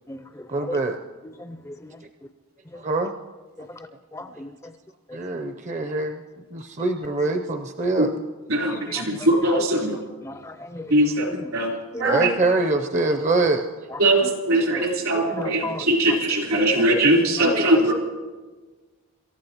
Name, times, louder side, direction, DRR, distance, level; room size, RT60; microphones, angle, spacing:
voice 1, 0.5-1.0 2.8-3.1 5.1-6.2 6.5-8.1 9.8-9.9 12.0-13.6, right 2 dB, 35° right, 5 dB, 0.5 m, -24 dB
voice 2, 1.4-2.0 4.1-4.5 8.7-9.0 9.4-9.7 10.2-10.8 11.3-11.5 11.9-12.2 14.7-14.9 15.1-15.9 16.5-16.9 17.4-17.6, left 1 dB, 15° left, 9 dB, 0.4 m, -34 dB
voice 3, 8.5-10.0 10.9-11.3 11.5-11.7 12.0-12.3 14.0-17.9, right 1 dB, 80° right, 0 dB, 3.5 m, -20 dB
26.0 x 13.5 x 2.9 m, 1.3 s
head